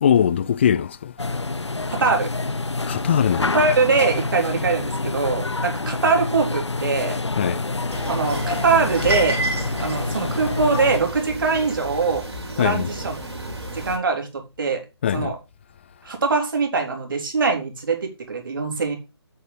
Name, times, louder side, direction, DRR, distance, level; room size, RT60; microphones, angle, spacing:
voice 1, 0.0-1.1 2.9-3.6 7.4-7.6 12.6-12.9 15.0-15.3, left 9 dB, 25° left, 0.5 m, -21 dB
sound 1, 1.2-11.0, left 3 dB, 85° left, 0.8 m, -27 dB
voice 2, 1.9-2.3 3.5-7.2 8.1-9.4 9.8-12.2 12.6-13.5 13.7-14.8 15.1-15.4 16.0-19.0, right 4 dB, 50° right, 3.6 m, -22 dB
sound 2, 7.9-14.0, right 1 dB, 75° right, 4.0 m, -31 dB
8.6 x 8.4 x 3.4 m
figure-of-eight pair, 150°, 14 cm